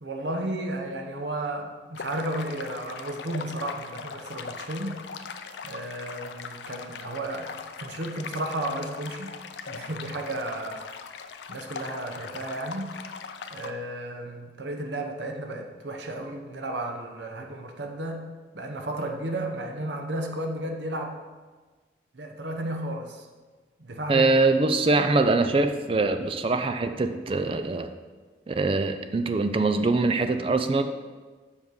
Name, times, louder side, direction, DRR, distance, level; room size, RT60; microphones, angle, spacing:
voice 1, 0.0-5.0 5.6-9.3 9.7-10.8 11.5-12.9 13.5-18.3 18.5-21.2 22.1-23.3 23.8-24.3 24.9-25.1, right 1 dB, 80° right, 3 dB, 0.9 m, -33 dB
sound 1, 1.9-13.7, left 5 dB, 80° left, 0.5 m, -40 dB
voice 2, 24.1-27.9 28.5-30.8, right 3 dB, 30° right, 8 dB, 0.4 m, -23 dB
7.2 x 5.3 x 4.7 m, 1.4 s
head